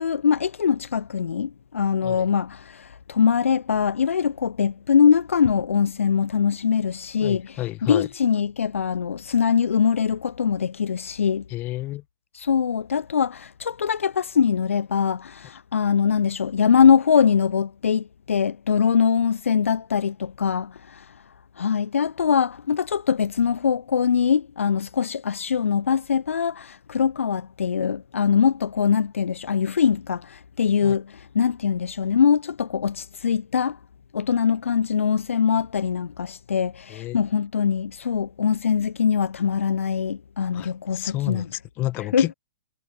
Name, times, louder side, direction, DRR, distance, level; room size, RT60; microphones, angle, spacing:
voice 1, 0.0-11.4 12.3-21.1 21.6-33.8 34.1-41.5 42.1-42.3, left 7 dB, 70° left, 0.4 m, -22 dB
voice 2, 7.2-8.1 11.5-12.0 30.8-31.0 36.9-37.2 40.5-42.3, left 17 dB, 25° left, 1.2 m, -31 dB
figure-of-eight pair, 115°, 7 cm